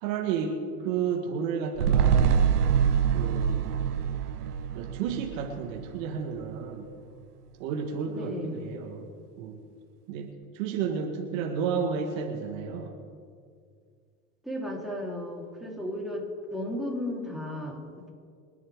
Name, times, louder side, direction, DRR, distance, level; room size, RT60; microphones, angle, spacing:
voice 1, 0.0-2.5 3.1-3.8 4.7-6.9 7.6-9.1 9.4-9.6 10.1-13.0, right 6 dB, 60° right, 3 dB, 1.6 m, -32 dB
sound 1, 1.8-6.3 6.6-6.7, right 7 dB, 85° right, 0.9 m, -25 dB
voice 2, 8.1-8.7 14.4-18.1, left 1 dB, ahead, -3 dB, 3.5 m, -35 dB
24.5 x 10.5 x 3.6 m, 2.2 s
hypercardioid pair, 90°, 45 cm